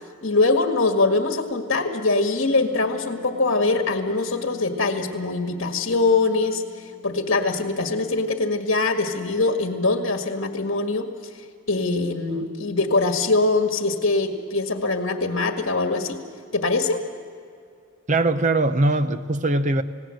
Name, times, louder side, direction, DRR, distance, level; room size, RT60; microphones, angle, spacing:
voice 1, 0.2-6.6 7.0-11.1 11.7-16.2 16.5-17.0, left 3 dB, 65° left, 5 dB, 1.9 m, -22 dB
Wind instrument woodwind instrument, 2.4-7.8, left 3 dB, 70° right, 4.8 m, -45 dB
voice 2, 18.1-19.8, right 2 dB, 35° right, 11 dB, 0.8 m, -21 dB
29.0 x 17.0 x 7.8 m, 2.3 s
head